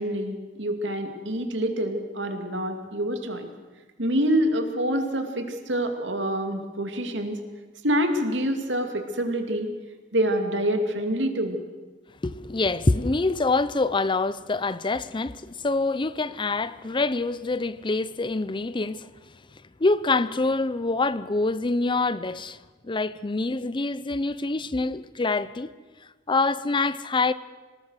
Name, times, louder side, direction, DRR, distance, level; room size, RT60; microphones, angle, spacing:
voice 1, 0.0-3.5 4.0-7.4 7.8-9.7 10.1-11.6, right 1 dB, 75° right, 2.6 m, -26 dB
voice 2, 12.2-19.1 19.8-22.6 22.8-25.7 26.3-27.3, left 3 dB, 25° left, 0.6 m, -25 dB
26.0 x 19.0 x 6.5 m
head